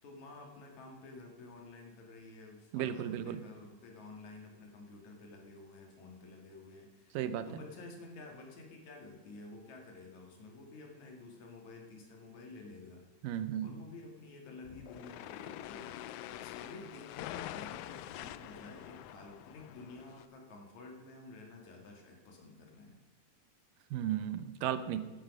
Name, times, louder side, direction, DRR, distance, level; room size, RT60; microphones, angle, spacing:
voice 1, 0.0-7.2 7.5-13.0 13.6-23.0, left 3 dB, 60° left, 1 dB, 3.4 m, -51 dB
voice 2, 2.7-3.4 7.1-7.6 13.2-13.8 23.9-25.1, right 10 dB, 85° right, 12 dB, 2.5 m, -35 dB
sound 1, 14.6-20.3, left 13 dB, 80° left, 1.8 m, -45 dB
14.0 x 11.5 x 5.4 m, 1.3 s
omnidirectional pair, 3.8 m